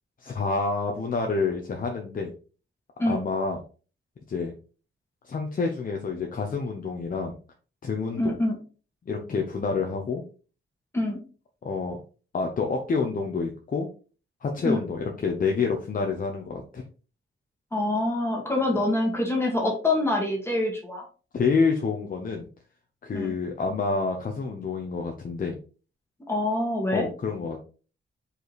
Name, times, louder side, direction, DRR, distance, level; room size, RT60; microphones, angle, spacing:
voice 1, 0.2-2.3 3.0-3.6 4.3-4.5 5.2-7.4 7.8-8.4 9.1-10.2 11.6-12.0 12.3-13.9 14.4-16.8 21.3-22.5 23.0-25.6 26.9-27.6, left 4 dB, 40° left, 2 dB, 0.9 m, -28 dB
voice 2, 8.2-8.5 10.9-11.2 14.6-14.8 17.7-21.0 23.1-23.3 26.3-27.1, left 1 dB, 10° left, -1 dB, 2.0 m, -25 dB
5.3 x 5.0 x 4.1 m, 0.37 s
wide cardioid pair, 180°, 21 cm